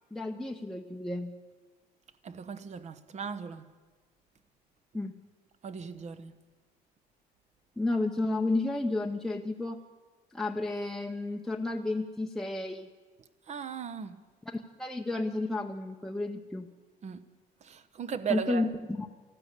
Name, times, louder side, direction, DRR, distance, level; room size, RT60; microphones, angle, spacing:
voice 1, 0.1-1.4 4.9-5.1 7.8-9.8 10.3-12.9 14.5-16.7 18.3-18.7 19.0-19.1, left 2 dB, ahead, 0.8 m, -32 dB
voice 2, 2.2-3.7 5.6-6.3 13.5-14.2 17.0-17.3 17.6-18.7, right 7 dB, 45° right, 1.0 m, -37 dB
14.0 x 12.5 x 8.3 m
cardioid pair, 110°, 17 cm